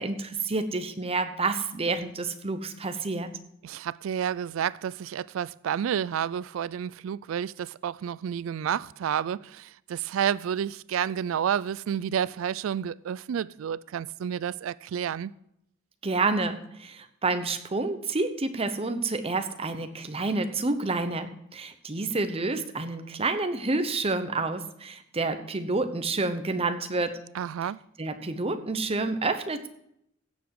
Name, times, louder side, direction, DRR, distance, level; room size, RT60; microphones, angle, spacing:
voice 1, 0.0-3.3 16.0-27.2 28.0-29.7, right 3 dB, 30° right, 0.9 m, -29 dB
voice 2, 3.6-15.3 27.3-27.8, right 8 dB, 80° right, 0.3 m, -30 dB
16.0 x 7.1 x 4.7 m
head